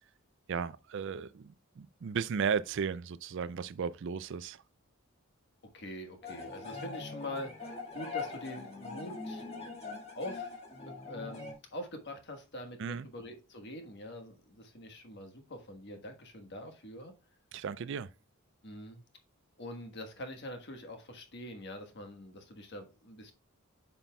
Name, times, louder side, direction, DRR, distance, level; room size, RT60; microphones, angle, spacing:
voice 1, 0.5-4.6 12.8-13.1 17.5-18.1, right 6 dB, 60° right, 0.4 m, -35 dB
voice 2, 5.7-9.5 10.1-10.6 10.9-17.1 18.6-19.0 19.6-23.3, left 1 dB, 55° left, 1.4 m, -44 dB
sound 1, 6.2-11.5, left 4 dB, 30° left, 1.9 m, -42 dB
9.1 x 5.7 x 2.3 m
head